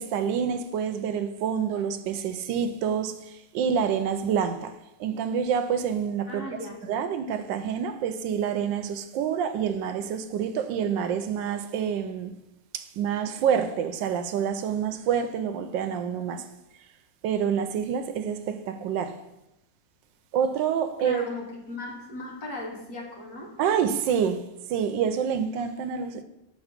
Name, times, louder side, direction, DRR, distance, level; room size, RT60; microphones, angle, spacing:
voice 1, 0.0-4.7 5.0-6.4 6.8-12.4 12.7-16.5 17.2-19.2 20.3-21.3 23.6-26.2, right 7 dB, 85° right, 1.3 m, -27 dB
voice 2, 6.3-7.0 21.0-23.5, left 2 dB, 60° left, 1.7 m, -37 dB
7.3 x 3.7 x 5.0 m
omnidirectional pair, 2.0 m